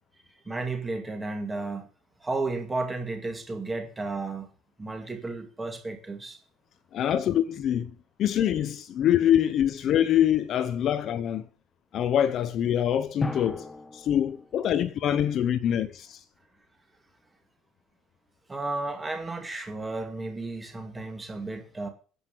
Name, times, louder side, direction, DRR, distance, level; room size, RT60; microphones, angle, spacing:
voice 1, 0.4-1.9 2.2-4.5 4.8-6.4 18.5-21.9, right 3 dB, 10° right, 2.3 m, -33 dB
voice 2, 6.9-7.9 8.2-11.5 11.9-16.2, left 10 dB, 35° left, 0.8 m, -25 dB
Drum, 13.2-15.5, left 2 dB, 10° left, 1.6 m, -36 dB
10.5 x 8.2 x 7.8 m
cardioid pair, 180°, 0 cm